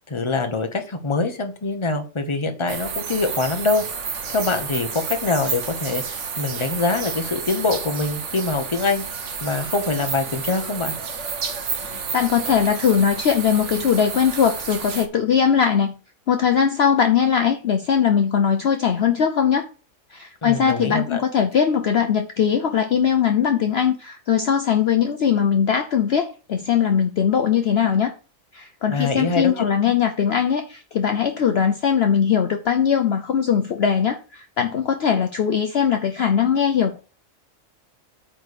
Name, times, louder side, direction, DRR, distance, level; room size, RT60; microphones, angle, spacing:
voice 1, 0.1-3.8 4.3-9.0 9.4-11.0 20.4-21.2 28.9-29.6, left 3 dB, 25° left, 6 dB, 1.1 m, -24 dB
sound 1, 2.7-15.1, right 6 dB, 60° right, 1.3 m, -30 dB
voice 2, 11.8-15.9 16.3-19.7 20.1-28.1 28.5-37.0, left 7 dB, 55° left, 6 dB, 0.9 m, -20 dB
8.8 x 3.6 x 6.6 m, 0.36 s
omnidirectional pair, 1.4 m